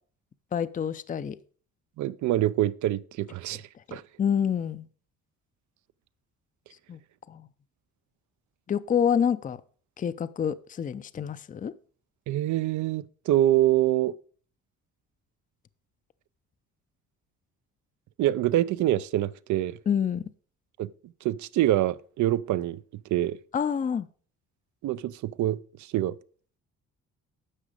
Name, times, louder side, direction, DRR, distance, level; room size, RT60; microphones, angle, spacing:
voice 1, 0.5-1.4 3.9-4.8 6.9-7.0 7.3-7.5 8.7-9.6 10.0-11.7 19.9-20.2 23.5-24.1, left 8 dB, 25° left, 0.5 m, -27 dB
voice 2, 2.0-3.6 3.9-4.0 12.3-14.1 18.2-19.8 20.8-20.9 21.2-22.8 23.1-23.4 24.8-26.2, right 14 dB, 75° right, 0.5 m, -25 dB
9.9 x 6.1 x 5.0 m
cardioid pair, 90°, 30 cm